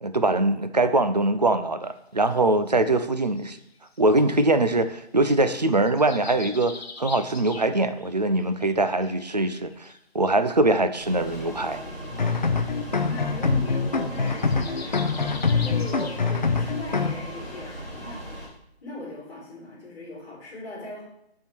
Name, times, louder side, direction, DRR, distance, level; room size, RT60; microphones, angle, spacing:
voice 1, 0.0-3.6 4.0-11.8, right 2 dB, 40° right, 11 dB, 0.4 m, -23 dB
sound 1, 1.8-2.0 2.7-5.0 5.5-8.1 8.4-10.0 10.5-10.6 10.7-11.0 12.0-12.1 12.4-12.5 12.8-13.0 13.3-13.5 13.7-16.6 16.9-17.1 17.5-17.6 18.2-18.3, left 4 dB, 70° left, 1.1 m, -43 dB
sound 2, 11.0-18.5, equal, 10° right, 0.8 m, -38 dB
sound 3, 12.1-17.1, left 4 dB, 45° left, 0.5 m, -24 dB
voice 2, 13.0-18.4 18.8-21.0, left 2 dB, 10° left, -14 dB, 2.8 m, -39 dB
7.3 x 3.7 x 6.1 m, 0.79 s
hypercardioid pair, 175°, 33 cm